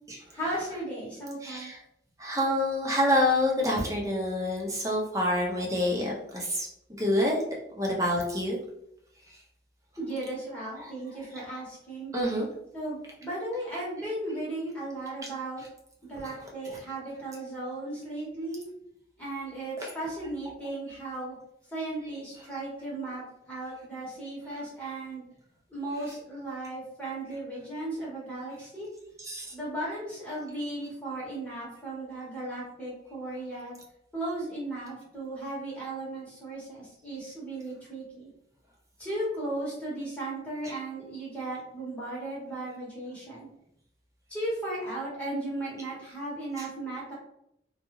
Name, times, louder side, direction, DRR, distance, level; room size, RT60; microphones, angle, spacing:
voice 1, 0.3-1.7 10.0-12.1 12.7-15.6 16.0-18.6 19.2-21.3 21.7-25.2 25.7-28.9 29.5-33.7 34.1-38.3 39.0-43.5 44.3-47.1, right 1 dB, 10° left, -7 dB, 1.0 m, -36 dB
voice 2, 1.4-1.8 2.2-7.4 7.8-8.6 10.8-10.9 12.1-12.5 16.2-16.3 16.6-16.8 19.8-19.9 29.2-29.5 46.6-46.7, left 1 dB, 20° right, -2 dB, 0.6 m, -27 dB
2.3 x 2.1 x 3.0 m, 0.77 s
head